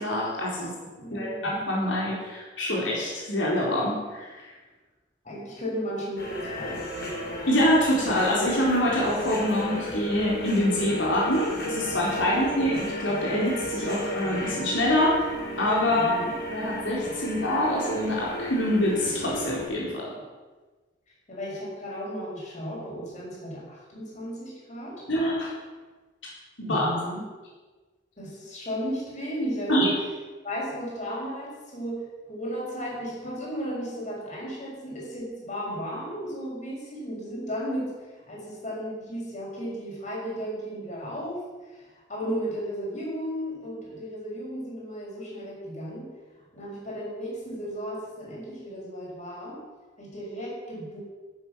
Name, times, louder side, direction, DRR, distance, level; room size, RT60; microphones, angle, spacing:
voice 1, 0.0-0.7 1.1-4.5 7.5-15.3 15.6-16.1 16.5-20.1 25.1-25.5 26.6-27.0 29.7-29.9, left 1 dB, 85° left, -4 dB, 4.1 m, -25 dB
voice 2, 0.6-1.5 5.2-7.1 12.1-12.8 15.9-16.3 20.1-20.2 21.3-25.0 26.6-27.3 28.2-29.9 30.4-37.9 38.3-41.4 41.7-46.1 46.5-49.6 50.0-51.0, equal, 40° left, -3 dB, 6.3 m, -34 dB
sound 1, 6.2-19.6, equal, 60° left, 5.1 m, -34 dB
13.0 x 10.5 x 7.5 m, 1.3 s
head